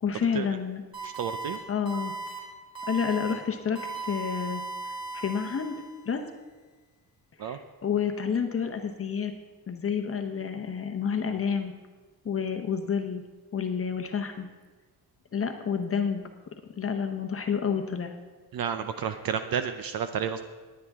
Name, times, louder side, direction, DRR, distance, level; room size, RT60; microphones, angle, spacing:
voice 1, 0.0-0.8 1.7-2.1 2.9-4.6 5.1-5.7 6.1-6.2 7.4-9.3 9.7-11.7 12.2-13.2 13.5-14.5 15.3-16.2 16.8-18.1 19.0-19.1, left 6 dB, 35° left, 5 dB, 0.9 m, -29 dB
sound 1, 0.9-1.6 1.9-2.4 2.8-3.3 3.8-6.1, right 3 dB, 10° right, 3.6 m, -37 dB
voice 2, 1.0-1.6 7.4-7.6 18.5-20.4, right 7 dB, 60° right, 9 dB, 0.6 m, -31 dB
18.0 x 9.6 x 3.6 m, 1.4 s
wide cardioid pair, 160°, 41 cm